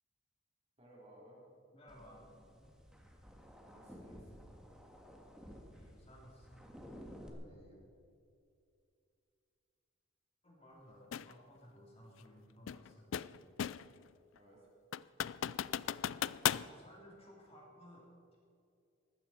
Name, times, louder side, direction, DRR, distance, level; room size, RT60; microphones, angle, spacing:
voice 1, 0.8-1.4 3.6-4.3 7.2-7.8 14.3-14.7, right 1 dB, 30° right, -5 dB, 4.3 m, -59 dB
voice 2, 1.7-2.3 5.7-6.7 10.4-13.6 16.4-18.4, equal, 30° left, -3 dB, 3.5 m, -58 dB
sound 1, 1.9-7.3, equal, 5° right, 1.7 m, -54 dB
sound 2, 11.1-11.3 12.7-14.0 14.4-14.5 14.9-16.7, left 9 dB, 80° left, 0.4 m, -36 dB
20.0 x 15.0 x 4.6 m, 2.5 s
head